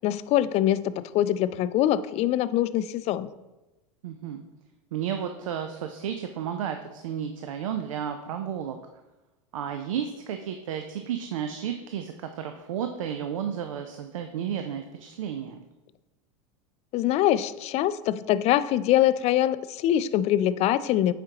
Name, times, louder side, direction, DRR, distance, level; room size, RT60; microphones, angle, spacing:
voice 1, 0.0-3.3 16.9-21.1, left 12 dB, 40° left, 15 dB, 0.4 m, -24 dB
voice 2, 4.0-4.4 4.9-8.8 9.5-15.6, right 8 dB, 90° right, 6 dB, 0.5 m, -32 dB
8.7 x 5.0 x 2.9 m, 1.0 s
supercardioid pair, 110°, 16 cm